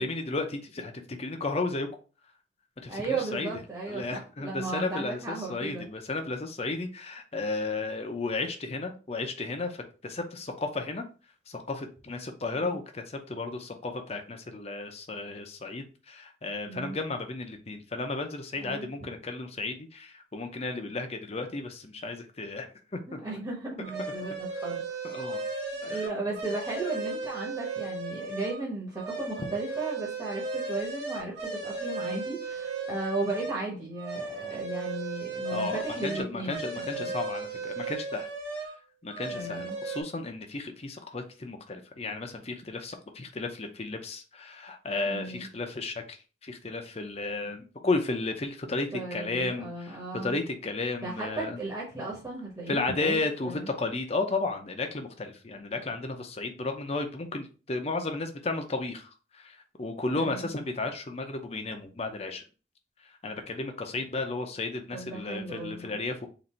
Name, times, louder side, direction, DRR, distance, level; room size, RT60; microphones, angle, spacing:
voice 1, 0.0-1.9 2.8-3.5 3.9-11.0 11.5-23.2 25.0-25.4 25.8-26.0 35.5-38.3 39.0-51.6 52.7-62.4 63.2-66.3, left 3 dB, 35° left, 5 dB, 0.6 m, -33 dB
voice 2, 2.9-5.9 12.6-12.8 16.7-17.0 18.6-18.9 23.2-24.8 25.8-37.1 39.3-39.8 45.1-45.5 48.9-50.4 51.0-53.7 60.1-60.5 64.9-66.0, right 3 dB, 20° right, -5 dB, 1.1 m, -35 dB
sound 1, 23.8-28.6 29.0-33.6 34.0-38.8 39.1-40.0, right 3 dB, 60° right, 1.5 m, -35 dB
3.9 x 2.6 x 4.2 m, 0.35 s
head